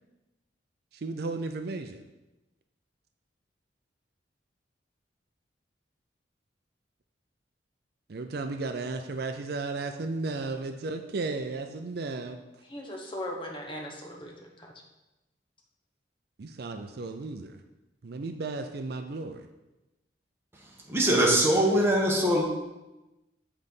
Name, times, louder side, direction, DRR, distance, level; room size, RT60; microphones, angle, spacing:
voice 1, 0.9-2.0 8.1-12.4 16.4-17.6 18.0-19.5, right 3 dB, 55° right, 7 dB, 0.5 m, -34 dB
voice 2, 12.7-14.7, left 1 dB, 30° left, 0 dB, 1.0 m, -38 dB
voice 3, 20.6-22.4, right 1 dB, 15° right, -2 dB, 1.2 m, -23 dB
7.5 x 4.0 x 5.3 m, 1.0 s
head